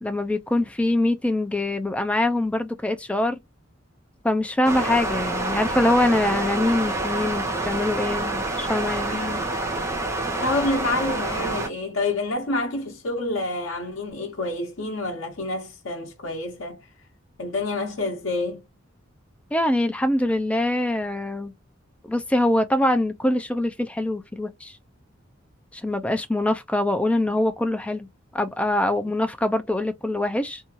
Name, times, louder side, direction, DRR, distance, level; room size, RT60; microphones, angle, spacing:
voice 1, 0.0-3.4 4.2-9.2 19.5-21.5 22.1-24.8 25.7-28.1 28.3-30.6, left 1 dB, 5° left, 0.3 m, -24 dB
sound 1, 4.6-11.7, right 2 dB, 15° right, 0.7 m, -27 dB
voice 2, 10.4-16.9 17.4-18.6, left 2 dB, 80° left, 0.7 m, -28 dB
2.7 x 2.3 x 2.9 m
head